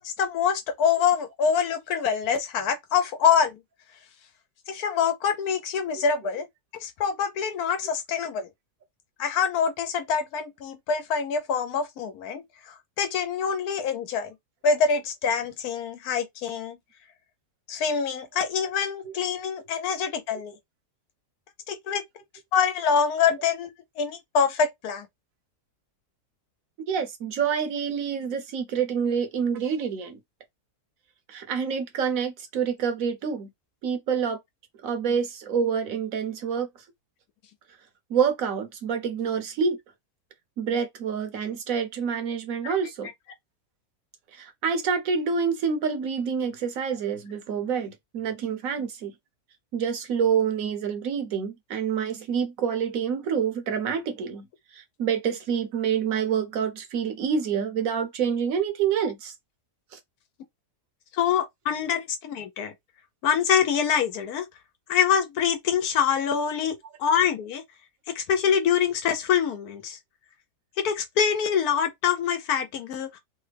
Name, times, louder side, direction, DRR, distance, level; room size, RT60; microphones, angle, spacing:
voice 1, 0.0-3.6 4.7-6.5 6.7-8.5 9.2-14.3 14.6-16.8 17.7-20.5 21.7-22.0 22.5-23.7 24.0-25.1 42.6-42.7 61.1-62.7 63.2-64.5 64.9-67.6 68.1-70.0 70.8-73.2, left 7 dB, 75° left, 1.2 m, -25 dB
voice 2, 26.9-30.2 31.3-33.5 33.8-34.4 34.8-36.7 38.1-39.8 40.6-43.1 44.3-49.1 49.7-54.4 54.7-59.3 59.9-60.0, right 7 dB, 65° right, 1.1 m, -27 dB
3.2 x 2.2 x 3.3 m
omnidirectional pair, 1.7 m